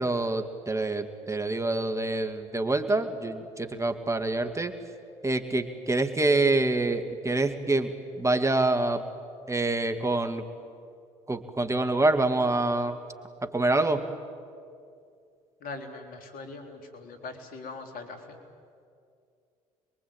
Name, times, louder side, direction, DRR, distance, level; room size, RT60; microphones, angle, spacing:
voice 1, 0.0-4.7 5.2-7.9 8.2-9.0 9.5-10.4 11.3-13.0 13.4-14.0, right 2 dB, 20° right, 7 dB, 2.1 m, -26 dB
voice 2, 15.6-18.4, left 3 dB, 60° left, 5 dB, 3.7 m, -41 dB
26.5 x 22.5 x 8.9 m, 2.3 s
hypercardioid pair, 60°, 16 cm